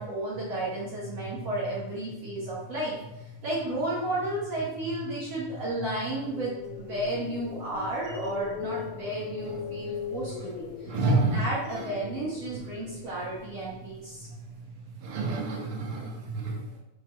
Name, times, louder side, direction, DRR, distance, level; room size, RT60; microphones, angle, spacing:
voice 1, 0.0-2.9 3.4-14.3, right 1 dB, 75° right, -7 dB, 1.4 m, -33 dB
sound 1, 6.1-14.2, left 7 dB, 90° left, 2.3 m, -40 dB
voice 2, 10.8-11.4 11.8-11.9 14.3-14.6 15.0-16.8, right 2 dB, 50° right, -4 dB, 1.6 m, -29 dB
7.6 x 4.5 x 4.6 m, 0.95 s
omnidirectional pair, 5.3 m